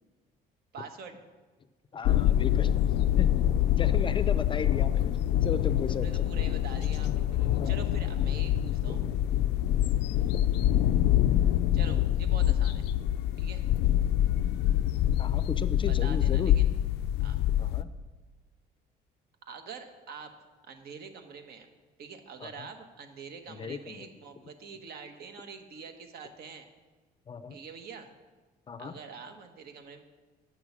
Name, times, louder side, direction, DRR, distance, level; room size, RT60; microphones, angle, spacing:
voice 1, 0.7-1.2 5.9-9.0 11.7-12.9 13.4-13.6 15.9-16.6 17.2-17.4 19.5-20.3 20.7-21.7 22.0-26.6 27.5-28.1 28.8-30.0, right 5 dB, 70° right, 6 dB, 1.3 m, -45 dB
voice 2, 1.9-2.7 3.2-3.5 3.8-6.3 7.6-7.8 8.9-9.1 10.1-10.4 15.2-16.6 17.6-17.9 22.4-22.7 23.5-24.1 27.3-27.6 28.7-29.0, left 6 dB, 30° left, 13 dB, 0.5 m, -36 dB
sound 1, 2.0-17.8, left 12 dB, 85° left, 0.4 m, -25 dB
9.6 x 6.2 x 7.2 m, 1.3 s
cardioid pair, 110°, 17 cm